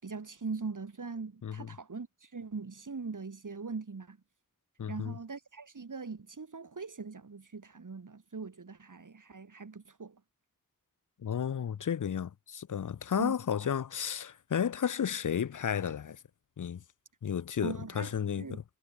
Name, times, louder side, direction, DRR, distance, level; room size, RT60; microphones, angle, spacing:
voice 1, 0.0-4.2 4.9-10.2 13.2-13.4 17.6-18.1 18.4-18.6, right 4 dB, 65° right, 5.7 m, -41 dB
voice 2, 4.8-5.2 11.2-16.2 16.6-16.8 17.2-18.6, left 8 dB, 65° left, 0.7 m, -33 dB
wide cardioid pair, 80°, 33 cm